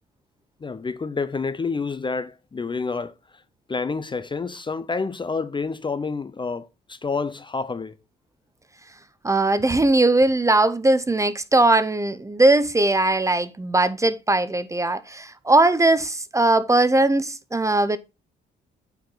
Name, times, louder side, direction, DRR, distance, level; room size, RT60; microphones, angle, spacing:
voice 1, 0.6-3.1 3.7-8.0, left 4 dB, 25° left, 0.6 m, -28 dB
voice 2, 9.2-18.0, right 2 dB, 15° right, 0.7 m, -19 dB
8.7 x 4.8 x 3.9 m
cardioid pair, 90°, 20 cm